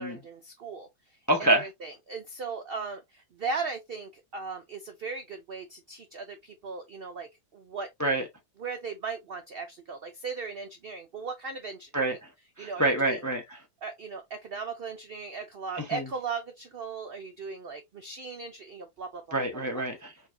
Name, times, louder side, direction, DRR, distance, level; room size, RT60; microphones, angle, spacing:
voice 1, 0.0-7.9 8.6-12.2 12.6-13.2 13.8-19.2 19.7-19.8, right 4 dB, 75° right, 0.5 m, -38 dB
voice 2, 1.3-1.6 8.0-8.3 11.9-12.2 12.6-13.6 15.8-16.0 19.3-20.1, right 2 dB, 20° left, 0.5 m, -26 dB
4.6 x 2.7 x 2.6 m
omnidirectional pair, 1.7 m